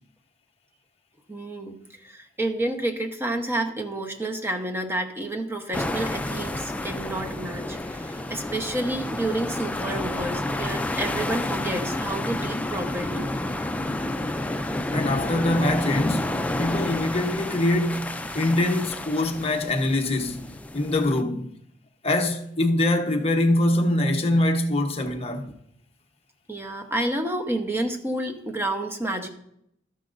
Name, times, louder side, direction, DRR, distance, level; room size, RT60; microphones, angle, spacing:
voice 1, 1.3-13.3 26.5-29.3, right 1 dB, 15° right, 1.0 m, -30 dB
sound 1, 5.7-21.2, left 1 dB, 10° left, 0.4 m, -30 dB
voice 2, 14.9-20.4 20.7-21.5 22.0-25.5, left 1 dB, 35° left, 1.0 m, -24 dB
13.0 x 9.9 x 2.6 m
head